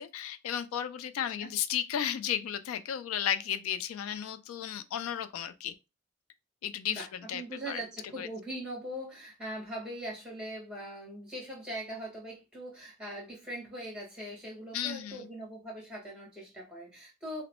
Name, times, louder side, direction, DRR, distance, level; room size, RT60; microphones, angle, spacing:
voice 1, 0.0-5.7 6.6-7.8 8.2-8.3 14.7-15.3, left 9 dB, 85° left, 0.3 m, -34 dB
voice 2, 7.0-17.4, right 1 dB, 5° right, 1.3 m, -41 dB
2.9 x 2.0 x 2.9 m
head